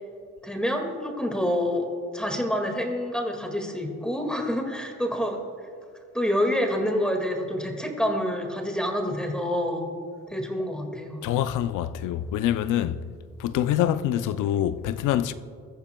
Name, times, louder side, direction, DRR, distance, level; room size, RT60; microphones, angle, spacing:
voice 1, 0.4-1.9 2.1-5.5 6.1-9.9 10.3-11.3, equal, 5° left, 2.0 m, -27 dB
voice 2, 11.2-13.1 13.4-15.3, left 11 dB, 90° left, 0.6 m, -25 dB
22.0 x 14.0 x 2.3 m
cardioid pair, 90°, 30 cm